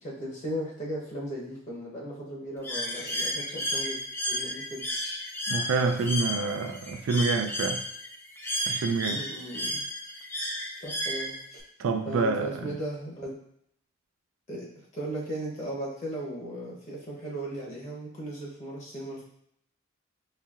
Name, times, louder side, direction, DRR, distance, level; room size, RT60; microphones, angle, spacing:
voice 1, 0.0-4.0 4.3-4.9 9.0-9.9 10.8-11.6 12.0-13.4 14.5-19.2, right 1 dB, 35° left, 0.8 m, -37 dB
Bird, 2.6-11.6, equal, 10° left, 0.4 m, -33 dB
voice 2, 5.5-7.8 8.7-9.2 11.8-12.7, right 4 dB, 75° right, 0.3 m, -27 dB
4.2 x 2.8 x 2.3 m
head